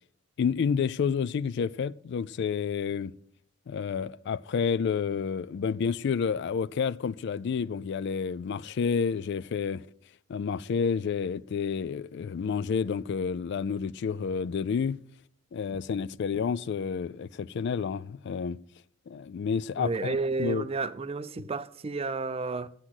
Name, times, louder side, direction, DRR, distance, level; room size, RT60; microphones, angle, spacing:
voice 1, 0.4-3.1 3.7-9.9 10.3-15.0 15.5-18.6 19.1-20.7, left 6 dB, 55° left, 0.3 m, -30 dB
voice 2, 19.8-22.7, right 3 dB, 25° right, 0.4 m, -31 dB
8.1 x 7.5 x 5.9 m
head